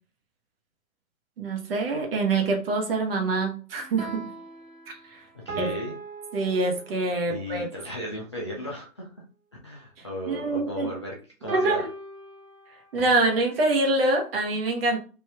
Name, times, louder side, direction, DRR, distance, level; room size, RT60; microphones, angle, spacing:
voice 1, 1.4-4.3 4.9-5.2 5.6-5.7 6.3-7.7 10.3-10.9 11.5-11.9 12.9-15.0, right 2 dB, 45° right, 1.0 m, -25 dB
sound 1, 3.8-7.2 11.5-14.0, right 3 dB, 75° right, 0.9 m, -39 dB
voice 2, 5.5-5.9 7.3-9.1 9.6-11.1 11.4-11.8, left 1 dB, 25° left, 0.3 m, -35 dB
3.3 x 2.6 x 3.4 m
figure-of-eight pair, 130°, 41 cm